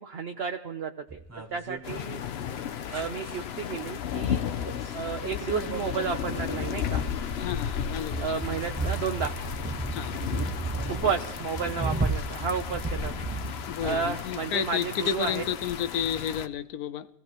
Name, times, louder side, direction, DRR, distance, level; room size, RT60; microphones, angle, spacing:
voice 1, 0.0-2.2 2.9-4.5 4.9-7.0 8.2-9.3 10.9-13.3 13.8-15.4, right 6 dB, 50° right, 1.0 m, -32 dB
sound 1, 1.1-2.0 2.9-3.4 4.6-4.9 5.2-14.0 15.0-15.1, right 3 dB, 15° right, 0.8 m, -34 dB
sound 2, 1.8-16.5, left 8 dB, 55° left, 0.8 m, -34 dB
voice 2, 7.4-8.3 9.9-10.1 13.7-17.1, left 9 dB, 80° left, 1.3 m, -31 dB
25.0 x 16.5 x 3.1 m
omnidirectional pair, 1.6 m